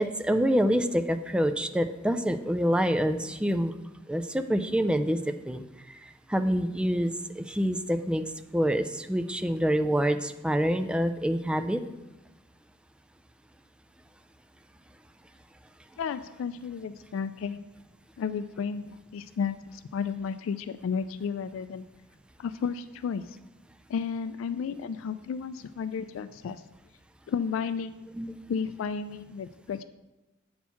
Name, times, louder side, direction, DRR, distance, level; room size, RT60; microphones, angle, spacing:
voice 1, 0.0-3.7 4.1-5.2 5.4-5.6 6.3-8.2 8.5-11.8 28.2-28.4, equal, 5° right, 8 dB, 0.4 m, -26 dB
voice 2, 16.0-17.7 18.2-21.9 22.4-23.4 23.9-26.6 27.3-28.0 28.5-29.8, left 6 dB, 80° left, 12 dB, 0.3 m, -33 dB
8.3 x 4.4 x 5.7 m, 1.0 s
head